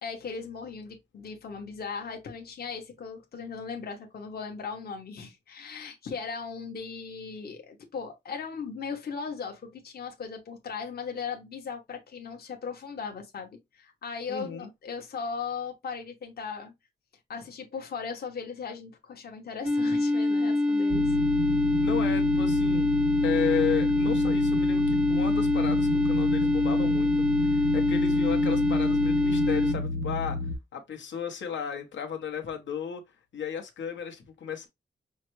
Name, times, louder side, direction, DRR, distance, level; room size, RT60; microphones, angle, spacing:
voice 1, 0.0-16.7 17.3-21.2, left 5 dB, 55° left, 0.9 m, -38 dB
voice 2, 14.3-14.7 21.8-22.9 23.2-30.4 30.7-33.0 33.3-34.7, left 7 dB, 85° left, 1.0 m, -34 dB
sound 1, 19.6-29.7, left 2 dB, 5° right, 0.3 m, -24 dB
sound 2, 20.9-30.5, left 1 dB, 85° right, 0.8 m, -31 dB
5.5 x 2.1 x 3.0 m
wide cardioid pair, 170°, 19 cm